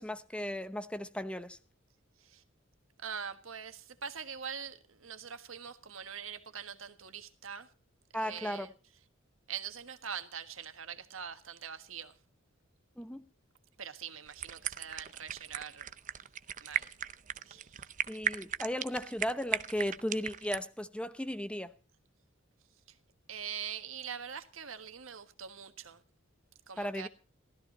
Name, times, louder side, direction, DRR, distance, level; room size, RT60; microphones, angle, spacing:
voice 1, 0.0-1.6 8.1-8.7 13.0-13.2 18.1-21.7 26.8-27.1, equal, 5° left, 0.8 m, -36 dB
voice 2, 3.0-7.7 8.1-8.7 9.5-12.1 13.8-15.9 16.6-16.9 17.5-17.9 23.3-26.0 26.7-27.1, right 7 dB, 90° right, 1.5 m, -43 dB
sound 1, 14.3-20.6, right 9 dB, 40° right, 0.6 m, -37 dB
16.0 x 14.0 x 4.2 m
head